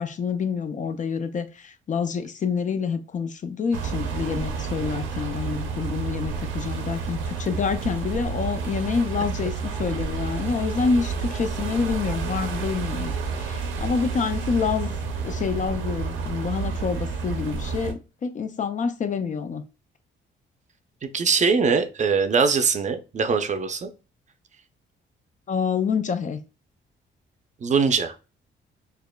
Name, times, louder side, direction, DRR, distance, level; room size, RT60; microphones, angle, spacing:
voice 1, 0.0-14.9 15.2-19.6 25.5-26.4, left 5 dB, 40° left, 0.4 m, -27 dB
sound 1, 3.7-17.9, right 5 dB, 90° right, 0.7 m, -30 dB
voice 2, 21.1-23.9 27.6-28.2, right 5 dB, 35° right, 0.5 m, -22 dB
4.8 x 2.4 x 2.2 m
cardioid pair, 90°, 20 cm